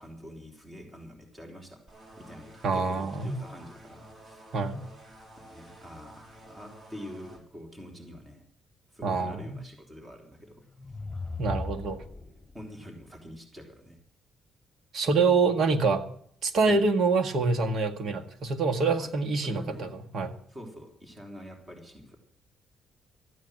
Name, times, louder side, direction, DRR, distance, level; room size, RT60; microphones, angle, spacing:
voice 1, 0.0-1.8 2.2-4.5 5.4-8.5 8.9-10.6 10.9-11.0 12.5-14.0 16.7-16.8 19.0-19.1 19.4-20.0 20.5-22.2, equal, 20° right, 3 dB, 3.6 m, -46 dB
sound 1, 1.9-7.4, right 1 dB, 35° right, 4.2 m, -51 dB
voice 2, 2.6-3.4 4.5-4.8 9.0-9.6 11.4-12.0 14.9-16.0 16.4-20.3, right 4 dB, 60° right, 6 dB, 1.8 m, -26 dB
sound 2, 10.6-12.6, left 3 dB, 10° left, 3.2 m, -38 dB
14.0 x 9.4 x 7.6 m, 0.63 s
cardioid pair, 90°, 0 cm